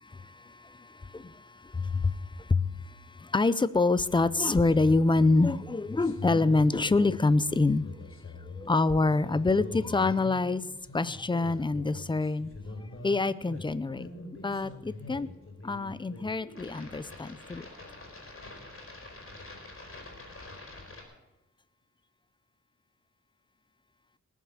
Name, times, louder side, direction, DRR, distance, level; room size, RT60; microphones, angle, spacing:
voice 1, 0.0-7.8 8.4-10.6 10.9-12.5 13.0-14.1 14.4-15.3 15.6-17.7, left 3 dB, 15° left, 0.5 m, -26 dB
sound 1, 4.0-21.0, left 3 dB, 45° left, 4.1 m, -43 dB
19.5 x 7.3 x 7.0 m
wide cardioid pair, 135°, 30 cm